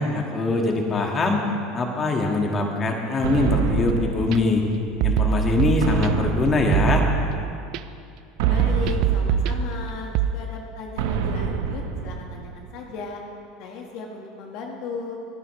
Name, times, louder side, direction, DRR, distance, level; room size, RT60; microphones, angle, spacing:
voice 1, 0.0-1.4 1.7-4.6 5.0-7.1, left 3 dB, 30° left, 1 dB, 1.9 m, -22 dB
sound 1, 3.2-5.0 5.8-7.5 8.4-10.2 11.0-12.8, right 6 dB, 80° right, 1.2 m, -28 dB
sound 2, 3.5-4.4 5.0-6.4 6.7-7.8 8.4-10.3, right 8 dB, 60° right, 0.6 m, -24 dB
voice 2, 8.4-13.2 13.6-15.2, left 4 dB, 65° left, 1 dB, 1.7 m, -36 dB
24.5 x 9.7 x 3.3 m, 2.4 s
supercardioid pair, 100°, 0 cm